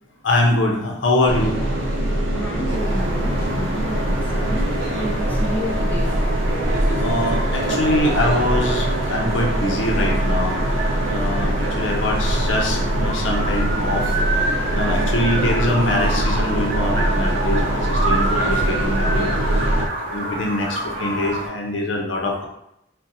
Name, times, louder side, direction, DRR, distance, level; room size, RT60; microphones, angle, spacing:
voice 1, 0.2-1.6 7.0-10.6 11.1-14.1 14.7-19.3 20.1-22.5, left 1 dB, 80° left, 1 dB, 0.6 m, -23 dB
sound 1, 1.3-19.9, right 1 dB, 90° right, 0.5 m, -22 dB
voice 2, 2.3-6.2, equal, 10° left, -2 dB, 0.4 m, -30 dB
sound 2, 2.7-21.5, right 1 dB, 50° right, 0.7 m, -29 dB
2.6 x 2.1 x 4.0 m, 0.81 s
head